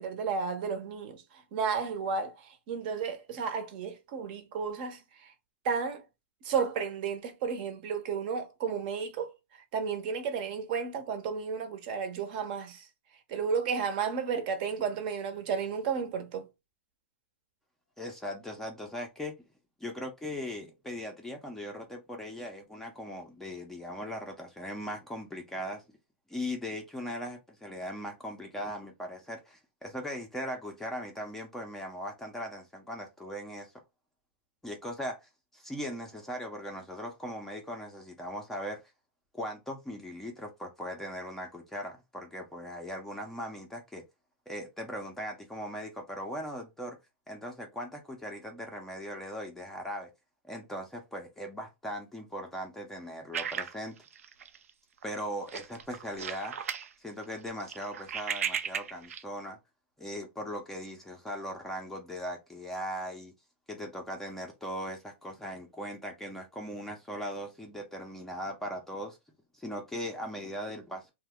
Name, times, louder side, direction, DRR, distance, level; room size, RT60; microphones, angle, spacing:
voice 1, 0.0-5.3 5.6-6.0 6.4-9.3 9.7-12.9 13.3-16.5, right 6 dB, 45° right, 0.6 m, -33 dB
voice 2, 18.0-19.4 19.8-25.8 26.3-33.7 34.6-38.8 39.3-44.0 44.5-47.0 47.3-50.1 50.5-54.0 55.0-56.6 57.0-59.6 60.0-63.3 63.7-69.2 69.5-71.1, equal, 5° left, 0.4 m, -39 dB
sound 1, 53.3-54.7 55.0-55.2 55.5-56.9 57.2-59.2, right 8 dB, 90° right, 0.5 m, -35 dB
2.8 x 2.1 x 3.4 m
hypercardioid pair, 150°, 7 cm